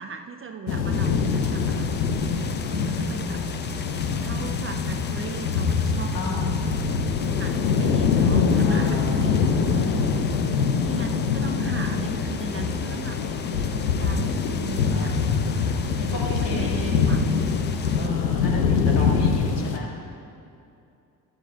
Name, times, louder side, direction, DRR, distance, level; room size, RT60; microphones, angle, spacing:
voice 1, 0.0-2.1 2.7-3.4 3.9-6.7 7.0-9.5 10.8-13.2 13.5-15.1 15.7-17.3, right 5 dB, 25° right, 6 dB, 0.5 m, -38 dB
sound 1, 0.7-19.8, left 5 dB, 90° left, 0.6 m, -24 dB
sound 2, 0.9-18.1, left 6 dB, 20° left, 0.5 m, -39 dB
voice 2, 2.7-3.7 6.1-6.6 8.6-10.1 14.8-15.6 16.0-17.1 17.9-19.9, left 1 dB, 55° left, -3 dB, 2.1 m, -35 dB
16.0 x 12.5 x 2.4 m, 2.6 s
figure-of-eight pair, 40°, 50 cm